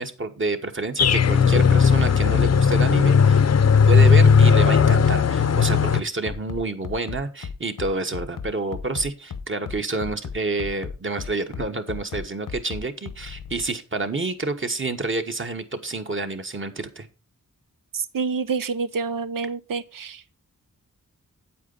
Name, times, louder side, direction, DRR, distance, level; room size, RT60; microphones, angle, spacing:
voice 1, 0.0-3.4 3.9-17.1, right 3 dB, 40° right, 1.2 m, -28 dB
sound 1, 1.0-6.0, left 6 dB, 50° left, 0.7 m, -16 dB
Bass drum, 6.3-13.6, left 6 dB, 75° left, 0.9 m, -34 dB
voice 2, 17.9-20.4, right 5 dB, 85° right, 0.9 m, -28 dB
8.8 x 8.4 x 4.0 m
wide cardioid pair, 140°, 32 cm